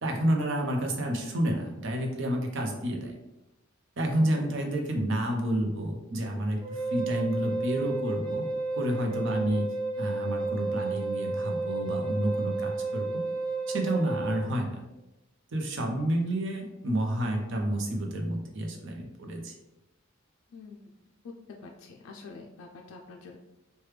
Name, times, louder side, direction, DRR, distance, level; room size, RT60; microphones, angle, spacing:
voice 1, 0.0-3.2 4.0-8.4 8.7-9.6 10.0-13.1 13.7-14.8 15.5-19.5, right 1 dB, 65° right, 2 dB, 0.6 m, -29 dB
voice 2, 4.2-4.7 9.2-9.5 20.5-20.9 21.6-23.4, left 4 dB, 80° left, 1 dB, 0.3 m, -46 dB
Wind instrument woodwind instrument, 6.6-14.5, right 3 dB, 20° right, 0.5 m, -32 dB
3.2 x 2.2 x 3.2 m, 0.96 s
head